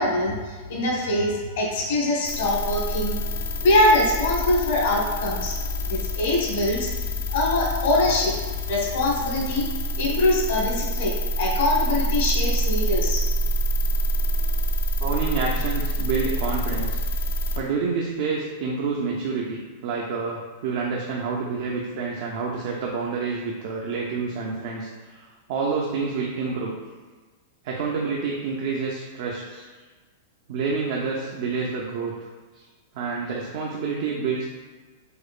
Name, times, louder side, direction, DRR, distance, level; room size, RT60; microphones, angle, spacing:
voice 1, 0.0-3.2 3.6-5.6 5.8-6.9 7.3-8.3 8.7-9.7 10.0-13.2, left 1 dB, 65° left, -2 dB, 1.0 m, -23 dB
sound 1, 2.2-17.6, equal, 85° left, 0.5 m, -26 dB
voice 2, 15.0-17.0 17.6-26.7 27.6-29.7 30.5-32.3 32.5-32.6 32.9-34.6, right 4 dB, 55° right, -2 dB, 0.4 m, -28 dB
4.8 x 2.1 x 2.4 m, 1.4 s
supercardioid pair, 160°, 0 cm